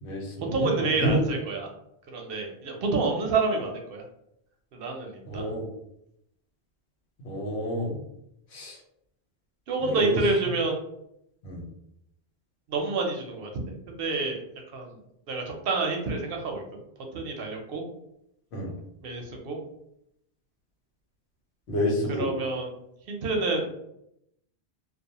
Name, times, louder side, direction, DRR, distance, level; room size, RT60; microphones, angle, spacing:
voice 1, 0.0-0.7 1.0-1.2 5.2-5.7 7.2-8.0 8.5-8.8 9.8-10.2 11.4-11.6 18.5-18.7 21.7-22.3, equal, 90° left, -3 dB, 1.0 m, -29 dB
voice 2, 0.5-1.7 2.1-4.0 4.7-5.5 9.7-10.8 12.7-14.4 14.7-15.0 15.3-16.8 17.1-17.8 19.0-19.6 22.2-22.7 23.1-23.7, right 3 dB, 65° right, 2 dB, 0.7 m, -28 dB
2.3 x 2.3 x 2.8 m, 0.79 s
omnidirectional pair, 1.1 m